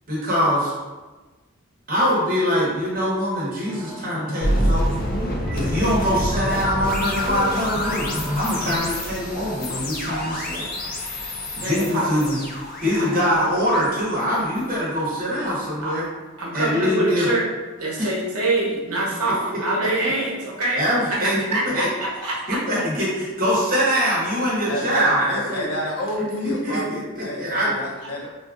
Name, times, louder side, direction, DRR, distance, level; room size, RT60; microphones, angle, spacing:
voice 1, 0.1-0.8 1.9-5.0 5.5-8.1 8.3-10.7 11.5-12.4 12.8-16.1 16.5-17.3 18.0-18.1 19.5-19.6 20.7-21.9 22.5-25.7 26.4-27.7, equal, 40° right, -6 dB, 1.0 m, -23 dB
sound 1, 3.7-8.8, left 1 dB, 5° right, 0.7 m, -31 dB
sound 2, 4.4-15.4, equal, 40° left, 0.4 m, -28 dB
voice 2, 11.5-12.3 13.0-13.4 15.4-15.5 15.8-15.9 16.4-17.5 17.8-20.8 21.1-21.2 21.5-22.6, right 2 dB, 90° right, -5 dB, 0.9 m, -25 dB
voice 3, 24.7-28.3, left 1 dB, 80° left, -1 dB, 0.6 m, -29 dB
3.9 x 2.4 x 2.4 m, 1.2 s
head